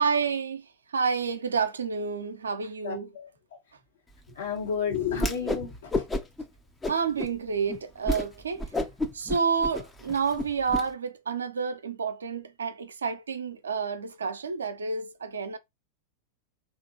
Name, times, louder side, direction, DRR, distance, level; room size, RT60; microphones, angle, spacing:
voice 1, 0.0-3.1 6.9-8.6 9.1-15.6, right 5 dB, 70° right, 0.4 m, -29 dB
voice 2, 2.8-3.3 4.3-6.1, left 7 dB, 65° left, 1.2 m, -31 dB
Whoosh swoosh swish, 5.1-5.6 5.9-6.4 6.8-7.3 7.7-7.8 8.1-8.3 8.6-10.8, left 1 dB, 15° left, 0.5 m, -30 dB
2.9 x 2.4 x 2.6 m
figure-of-eight pair, 90°, 0 cm